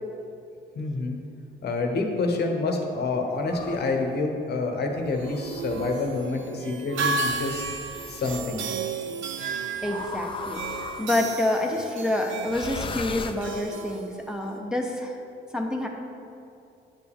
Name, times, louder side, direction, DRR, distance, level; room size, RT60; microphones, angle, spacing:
voice 1, 0.7-1.2 1.6-7.7 8.1-8.7, left 3 dB, 55° left, 3 dB, 0.9 m, -27 dB
sound 1, 3.4-4.1 5.0-6.2 7.2-8.5 9.8-11.3 12.4-13.9, left 4 dB, 25° left, 0.4 m, -38 dB
sound 2, 5.0-14.6, right 4 dB, 70° right, 0.7 m, -34 dB
voice 2, 9.8-15.2 15.5-15.9, left 1 dB, 5° right, 0 dB, 0.7 m, -28 dB
9.1 x 4.9 x 3.5 m, 2.6 s
cardioid pair, 90°, 20 cm